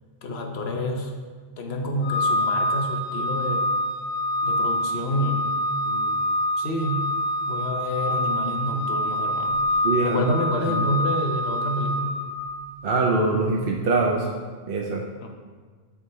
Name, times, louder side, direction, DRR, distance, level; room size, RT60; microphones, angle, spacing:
voice 1, 0.2-1.1 1.6-3.7 4.4-5.5 5.8-6.1 6.6-7.1 7.5-12.2 15.2-15.3, left 1 dB, 75° left, 3 dB, 1.1 m, -28 dB
Organ, 2.0-12.8, left 1 dB, 35° left, 1.8 m, -26 dB
voice 2, 9.8-10.3 10.6-10.8 12.8-14.3 14.7-15.0, right 3 dB, 65° right, -1 dB, 0.8 m, -23 dB
9.7 x 3.6 x 4.2 m, 1.5 s
omnidirectional pair, 1.1 m